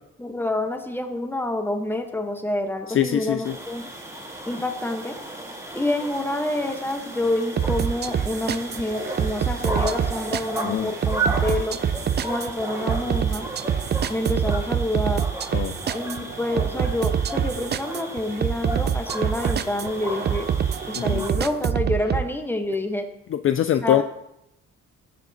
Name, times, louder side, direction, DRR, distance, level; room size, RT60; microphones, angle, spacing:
voice 1, 0.2-3.9 4.4-5.1 5.7-11.8 12.2-13.5 14.1-15.2 15.9-20.5 20.9-23.1 23.8-24.0, left 1 dB, 5° left, 5 dB, 1.2 m, -27 dB
voice 2, 2.9-3.5 10.6-10.9 15.5-15.7 20.9-21.2 23.3-24.0, left 11 dB, 45° left, 10 dB, 0.4 m, -23 dB
sound 1, 3.4-21.3, right 2 dB, 10° right, 1.8 m, -34 dB
sound 2, 7.6-22.3, right 8 dB, 35° right, 0.4 m, -26 dB
15.5 x 7.1 x 2.9 m, 0.85 s
cardioid pair, 90°, 30 cm